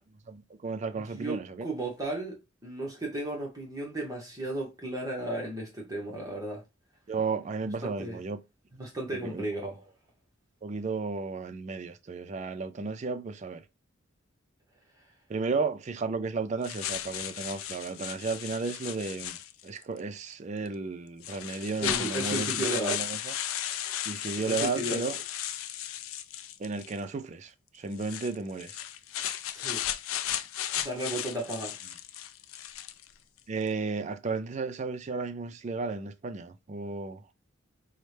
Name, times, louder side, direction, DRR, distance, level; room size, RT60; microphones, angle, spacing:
voice 1, 0.3-1.7 7.1-8.4 9.1-9.4 10.6-13.6 15.3-19.4 19.6-23.3 24.1-25.2 26.6-28.8 33.5-37.2, right 4 dB, 35° right, 0.3 m, -33 dB
voice 2, 0.9-6.6 7.8-8.2 8.7-9.8 21.8-23.0 24.2-25.2 29.5-29.8 30.8-31.8, right 2 dB, 15° right, 0.8 m, -34 dB
sound 1, 16.6-19.8 20.7-20.8 21.2-27.0 27.9-33.1, left 11 dB, 75° left, 0.3 m, -35 dB
4.2 x 2.1 x 3.2 m
head